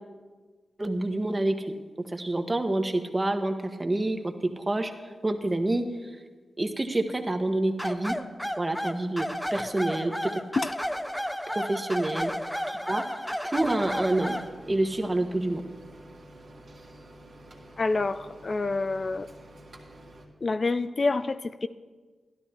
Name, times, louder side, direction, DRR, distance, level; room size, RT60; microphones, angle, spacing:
voice 1, 0.8-4.9 5.2-5.8 6.6-8.2 8.6-10.4 11.5-12.3 12.7-13.0 13.4-14.4 14.7-15.6, right 2 dB, 30° right, 6 dB, 1.3 m, -28 dB
sound 1, 7.8-14.5, equal, 5° left, 0.7 m, -32 dB
sound 2, 13.5-20.3, right 1 dB, 65° right, 1.9 m, -49 dB
voice 2, 17.8-19.3 20.4-21.7, left 3 dB, 50° left, 11 dB, 0.4 m, -27 dB
12.5 x 11.5 x 4.3 m, 1.4 s
cardioid pair, 45°, 0 cm